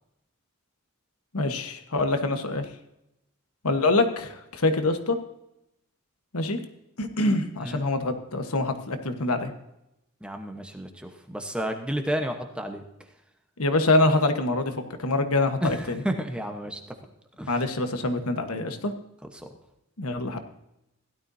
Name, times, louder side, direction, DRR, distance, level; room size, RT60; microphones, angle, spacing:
voice 1, 1.3-2.7 3.6-5.2 6.3-6.6 7.0-9.5 13.6-16.0 17.5-18.9 20.0-20.4, left 2 dB, 80° left, 7 dB, 1.3 m, -25 dB
voice 2, 10.2-12.8 15.6-16.8 17.4-17.6 19.3-19.5, equal, 5° right, 4 dB, 1.0 m, -31 dB
16.5 x 12.0 x 2.8 m, 0.85 s
head